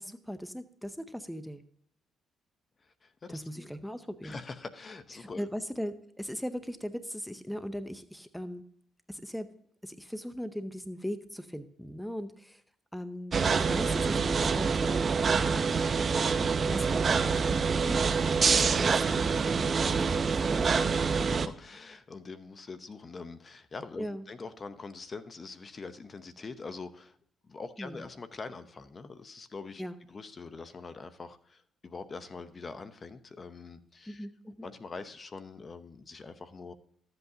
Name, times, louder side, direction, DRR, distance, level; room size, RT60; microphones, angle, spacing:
voice 1, 0.0-1.6 3.3-4.4 5.1-8.6 9.1-9.5 9.8-12.6 12.9-15.1 15.4-15.9 16.6-21.1 24.0-24.3 27.8-28.1 29.8-30.0 34.1-34.7, equal, 5° left, 11 dB, 0.7 m, -39 dB
voice 2, 3.0-3.7 4.2-5.5 20.5-27.1 27.5-29.8 30.1-34.3 34.6-36.7, left 4 dB, 35° left, 12 dB, 0.8 m, -44 dB
sound 1, 13.3-21.5, right 5 dB, 40° right, 0.6 m, -26 dB
14.0 x 8.1 x 2.8 m, 0.65 s
cardioid pair, 90°, 0 cm